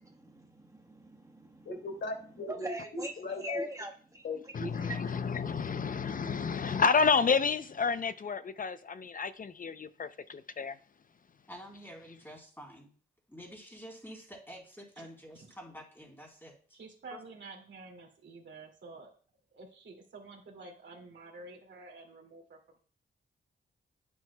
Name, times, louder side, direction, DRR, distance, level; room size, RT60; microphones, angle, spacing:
voice 1, 0.2-1.7 2.5-3.1 3.4-4.2 4.7-5.4, equal, 15° right, 1.2 m, -42 dB
voice 2, 1.6-3.6 4.2-4.7, left 2 dB, 70° left, 2.5 m, -39 dB
voice 3, 4.5-10.8, left 5 dB, 45° left, 0.5 m, -30 dB
voice 4, 11.5-12.9 13.3-16.5 17.1-17.2, equal, 10° left, 3.8 m, -48 dB
voice 5, 16.7-19.1 19.5-22.8, right 3 dB, 65° right, 2.3 m, -49 dB
9.1 x 7.6 x 2.2 m
cardioid pair, 65°, 20 cm